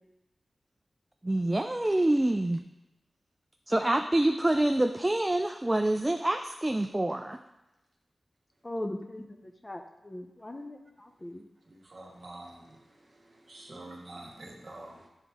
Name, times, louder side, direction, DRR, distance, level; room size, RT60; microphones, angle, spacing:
voice 1, 1.2-2.6 3.7-7.4, right 1 dB, 20° right, 5 dB, 0.3 m, -26 dB
voice 2, 8.6-11.5, left 1 dB, 25° left, 4 dB, 0.6 m, -40 dB
voice 3, 11.7-12.8 13.5-15.1, right 2 dB, 50° right, -1 dB, 1.3 m, -46 dB
9.8 x 3.6 x 3.5 m, 0.96 s
wide cardioid pair, 80°, 0 cm